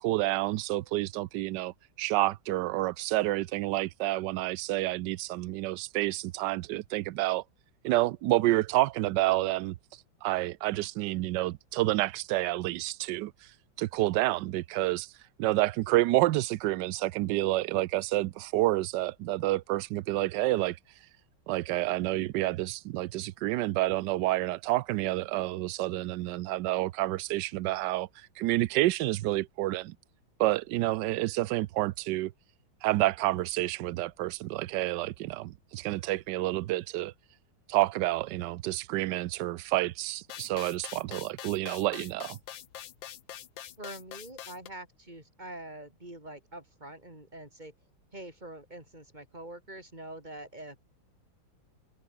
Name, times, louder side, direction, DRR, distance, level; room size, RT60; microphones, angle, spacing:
voice 1, 0.0-7.4 7.8-9.7 10.2-13.3 13.8-15.1 15.4-20.8 21.5-28.1 28.4-30.0 30.4-32.3 32.8-37.1 37.7-42.4, right 17 dB, 70° right, 1.1 m, -29 dB
sound 1, 40.3-44.7, left 11 dB, 70° left, 1.8 m, -44 dB
voice 2, 43.8-47.7 48.1-50.8, right 1 dB, 20° right, 4.8 m, -45 dB
omnidirectional pair, 2.2 m